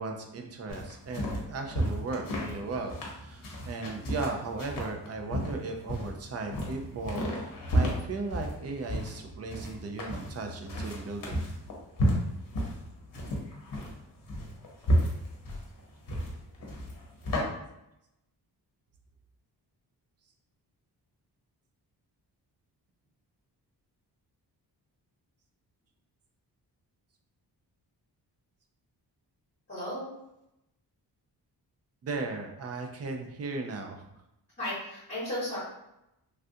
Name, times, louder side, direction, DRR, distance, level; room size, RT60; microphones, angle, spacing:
voice 1, 0.0-11.5 32.0-34.0, right 3 dB, 40° right, 4 dB, 0.4 m, -36 dB
sound 1, 0.7-17.4, equal, 55° left, 0.7 m, -32 dB
voice 2, 29.7-30.1 34.6-35.6, left 1 dB, 30° left, -9 dB, 1.0 m, -34 dB
3.3 x 2.4 x 2.6 m, 0.86 s
wide cardioid pair, 175°, 40 cm